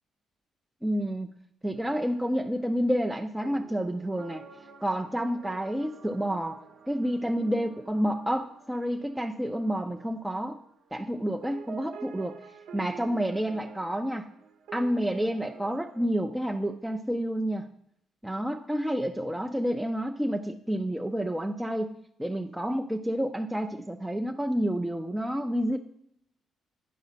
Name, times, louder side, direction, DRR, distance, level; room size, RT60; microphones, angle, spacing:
voice 1, 0.8-1.3 1.6-4.4 4.8-6.6 6.9-10.6 10.9-12.4 12.7-14.3 14.7-17.7 18.2-25.8, equal, 5° right, 4 dB, 0.5 m, -29 dB
sound 1, 1.8-11.2 11.4-16.1, right 6 dB, 80° right, 1.0 m, -49 dB
10.5 x 4.9 x 5.7 m, 0.71 s
cardioid pair, 90°, 0 cm